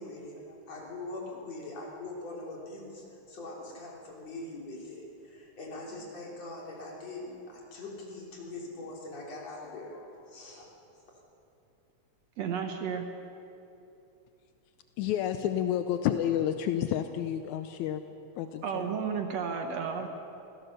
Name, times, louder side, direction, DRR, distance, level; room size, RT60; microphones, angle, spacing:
voice 1, 0.0-10.7, left 2 dB, 60° left, -2 dB, 4.5 m, -42 dB
voice 2, 12.4-13.1 18.6-20.1, right 6 dB, 65° right, 5 dB, 2.2 m, -32 dB
voice 3, 15.0-18.0 18.4-19.0, left 10 dB, 80° left, 8 dB, 2.1 m, -30 dB
25.0 x 16.5 x 6.8 m, 2.9 s
omnidirectional pair, 3.4 m